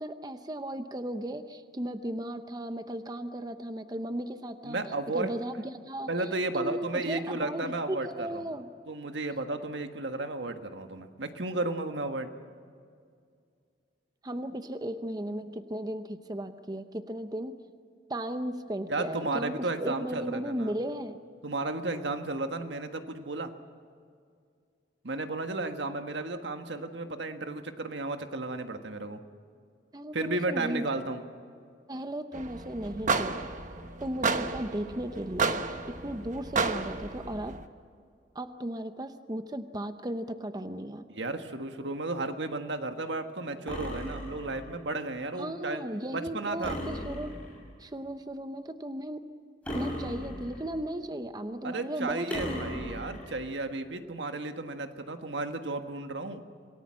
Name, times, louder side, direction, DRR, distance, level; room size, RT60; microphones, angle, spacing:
voice 1, 0.0-4.8 5.1-6.1 6.5-8.7 14.2-17.6 18.1-21.2 29.9-30.9 31.9-33.5 34.0-35.6 35.9-37.6 38.3-41.1 45.4-47.4 47.8-49.3 49.7-52.6, right 1 dB, 20° right, 9 dB, 0.7 m, -36 dB
voice 2, 4.6-5.3 6.1-8.4 8.9-12.3 18.9-20.7 21.4-23.5 25.0-29.2 30.1-31.2 41.1-45.8 46.1-46.8 51.6-56.4, right 2 dB, 80° right, 7 dB, 1.5 m, -33 dB
sound 1, 32.3-37.7, right 4 dB, 45° right, 1.2 m, -32 dB
sound 2, 43.7-44.7 46.6-47.7 49.6-50.8 52.3-53.4, left 1 dB, 5° left, 6.7 m, -37 dB
27.0 x 18.5 x 7.6 m, 2.2 s
head